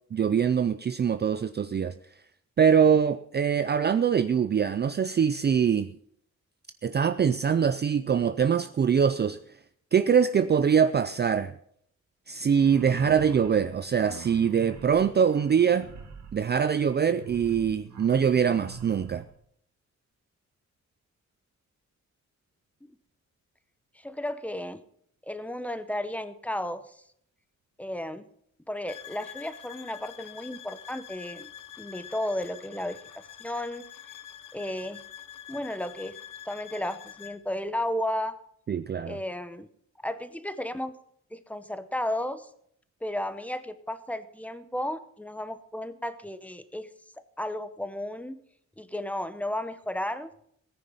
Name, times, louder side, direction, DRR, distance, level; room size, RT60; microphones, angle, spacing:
voice 1, 0.1-1.9 2.6-5.9 6.8-9.4 9.9-11.5 12.3-15.9 16.3-19.2 38.7-39.2, right 7 dB, 35° right, 11 dB, 0.4 m, -23 dB
sound 1, 12.5-19.3, right 6 dB, 70° right, 2.2 m, -45 dB
voice 2, 23.9-24.8 25.2-27.0 27.8-28.3 28.7-31.5 31.8-33.8 34.5-35.0 35.5-36.2 36.4-38.3 39.1-39.7 40.0-40.9 41.3-42.5 43.0-46.9 47.4-48.4 48.8-50.3, left 1 dB, 5° left, 12 dB, 0.8 m, -33 dB
sound 2, 28.9-37.4, left 10 dB, 90° left, 0.9 m, -46 dB
17.5 x 9.9 x 5.5 m, 0.69 s
wide cardioid pair, 155°, 30 cm